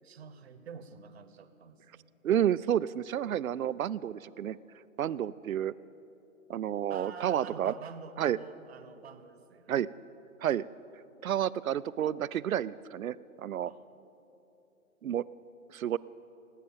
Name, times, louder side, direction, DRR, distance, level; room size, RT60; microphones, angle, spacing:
voice 1, 0.0-2.1 6.9-9.8 13.7-14.0, right 6 dB, 50° right, 11 dB, 1.0 m, -47 dB
voice 2, 2.2-4.6 5.0-5.7 6.5-7.7 8.2-8.4 9.7-9.9 10.4-10.6 11.2-13.7 15.0-15.2 15.7-16.0, right 10 dB, 75° right, 19 dB, 0.5 m, -30 dB
18.5 x 8.3 x 7.1 m, 2.9 s
figure-of-eight pair, 145°, 42 cm